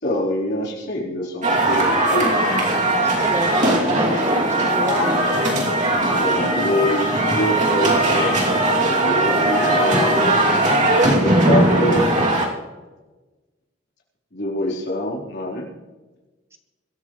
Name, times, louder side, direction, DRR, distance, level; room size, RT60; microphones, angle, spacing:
voice 1, 0.0-2.5 3.9-4.5 6.1-10.3 10.9-12.1 14.3-15.7, left 1 dB, 60° left, -3 dB, 4.1 m, -26 dB
sound 1, 1.4-12.5, right 1 dB, 40° right, 2.8 m, -19 dB
voice 2, 3.0-5.2, equal, 15° right, 4 dB, 1.5 m, -31 dB
23.5 x 13.0 x 3.2 m, 1.2 s
head